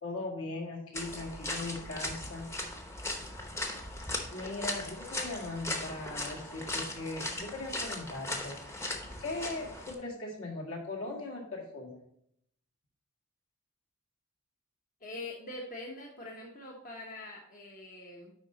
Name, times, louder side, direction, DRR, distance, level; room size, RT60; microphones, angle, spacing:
voice 1, 0.0-2.5 4.3-8.6 9.2-12.0, left 2 dB, 65° left, -1 dB, 2.0 m, -39 dB
sound 1, 0.9-9.9, left 1 dB, 10° left, 0.8 m, -38 dB
voice 2, 15.0-18.3, left 2 dB, 40° left, -2 dB, 1.0 m, -44 dB
9.9 x 3.9 x 4.0 m, 0.72 s
head